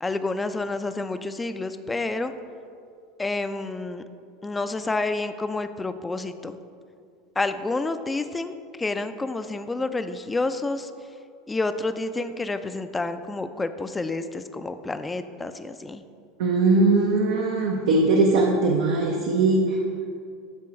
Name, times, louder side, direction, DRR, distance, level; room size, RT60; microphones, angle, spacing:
voice 1, 0.0-2.3 3.2-4.0 4.4-6.6 7.4-10.9 11.5-16.0, left 3 dB, 15° left, 10 dB, 0.4 m, -29 dB
voice 2, 16.4-19.8, right 3 dB, 70° right, 1 dB, 0.6 m, -20 dB
9.8 x 3.8 x 4.3 m, 2.4 s
hypercardioid pair, 80°, 0 cm